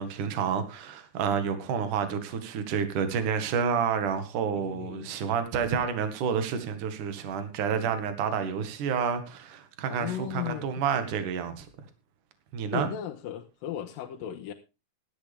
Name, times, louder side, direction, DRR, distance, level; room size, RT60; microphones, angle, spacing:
voice 1, 0.0-11.7 12.5-12.9, right 7 dB, 70° right, 3.2 m, -29 dB
voice 2, 4.5-5.1 9.9-10.7 12.7-14.5, left 11 dB, 85° left, 2.8 m, -36 dB
16.5 x 12.0 x 3.5 m
omnidirectional pair, 3.9 m